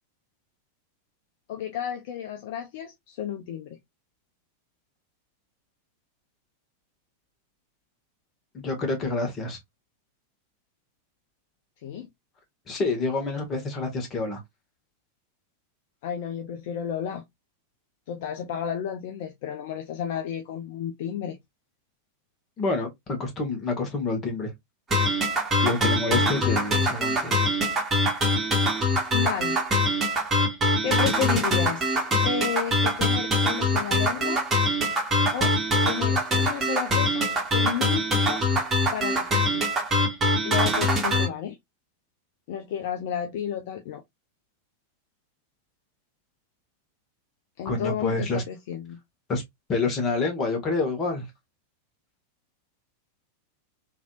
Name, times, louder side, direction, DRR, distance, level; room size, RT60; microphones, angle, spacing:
voice 1, 1.5-3.8 11.8-12.1 16.0-17.2 18.1-21.4 29.1-29.6 30.8-31.8 32.2-34.4 35.3-35.5 35.8-38.5 38.9-39.6 40.4-41.6 42.5-44.0 47.6-49.0, left 9 dB, 50° left, 0.5 m, -32 dB
voice 2, 8.5-9.6 12.7-14.4 22.6-24.5 25.6-27.3 47.6-48.4 49.3-49.4 49.7-51.3, left 3 dB, 25° left, 1.3 m, -27 dB
sound 1, 24.9-41.3, left 1 dB, 15° right, 1.3 m, -24 dB
3.2 x 2.6 x 2.4 m
figure-of-eight pair, 90°, 0 cm